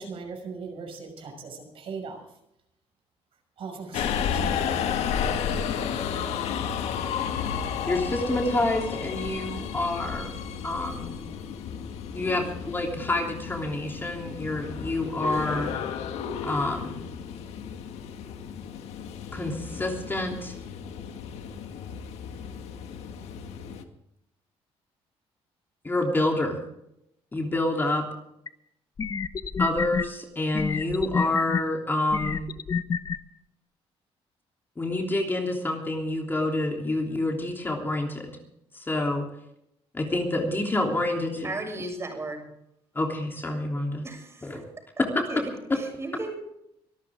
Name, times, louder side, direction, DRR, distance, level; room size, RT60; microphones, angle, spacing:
voice 1, 0.0-2.2 3.6-4.4, right 5 dB, 60° right, 3 dB, 5.9 m, -39 dB
Subway metro underground, 3.9-23.8, left 7 dB, 85° left, 1.9 m, -33 dB
voice 2, 7.9-10.3 10.6-11.2 12.1-15.7 16.4-17.0 19.3-20.5 25.8-26.6 27.3-28.0 29.6-32.5 34.8-38.4 38.7-39.2 39.9-41.5 42.9-44.0 44.4-44.6 45.1-45.4, left 2 dB, 20° left, 1 dB, 3.2 m, -28 dB
sound 1, 28.5-28.6 29.0-30.0 30.5-31.6 32.1-33.2, left 6 dB, 35° left, 1.0 m, -28 dB
voice 3, 41.4-42.5 44.0-44.6 45.3-46.3, right 2 dB, 25° right, 3 dB, 7.0 m, -35 dB
24.5 x 13.5 x 3.7 m, 0.79 s
cardioid pair, 120°, 11 cm